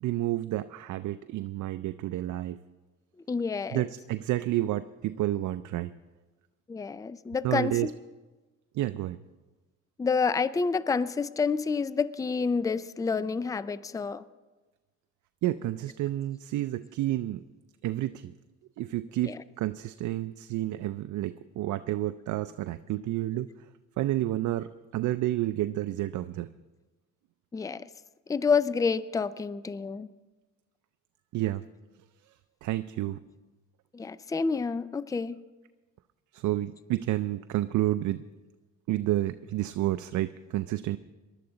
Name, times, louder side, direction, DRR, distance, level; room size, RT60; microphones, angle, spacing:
voice 1, 0.0-2.6 3.7-5.9 7.4-7.9 8.7-9.2 15.4-17.4 17.8-18.3 18.8-23.5 24.0-26.5 31.3-31.6 32.2-32.3 32.6-33.2 36.3-38.2 38.9-41.0, right 14 dB, 75° right, 0.5 m, -30 dB
voice 2, 3.3-3.8 6.7-7.9 10.0-14.2 19.2-19.4 27.5-27.9 28.3-30.1 33.9-35.4, left 5 dB, 10° left, 0.4 m, -28 dB
19.5 x 12.0 x 3.9 m
cardioid pair, 90°, 30 cm